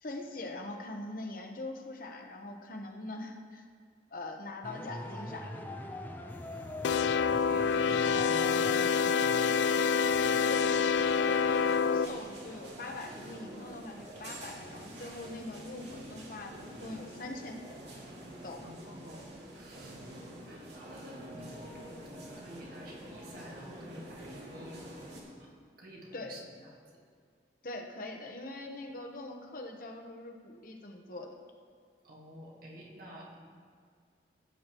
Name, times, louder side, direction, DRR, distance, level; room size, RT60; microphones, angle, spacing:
voice 1, 0.0-3.6 4.1-5.6 10.4-17.6 18.4-18.6 19.9-20.0 26.1-26.4 27.6-31.4, left 2 dB, 50° left, 3 dB, 1.0 m, -43 dB
sound 1, 4.6-11.1, left 1 dB, 10° left, 0.6 m, -44 dB
voice 2, 6.5-10.0 18.6-20.0 20.4-26.7 32.0-33.4, equal, 55° right, -3 dB, 1.9 m, -50 dB
sound 2, 6.8-12.1, left 6 dB, 85° left, 0.3 m, -27 dB
sound 3, 7.3-25.2, right 1 dB, 80° right, 2.2 m, -47 dB
16.5 x 8.3 x 3.0 m, 2.1 s
head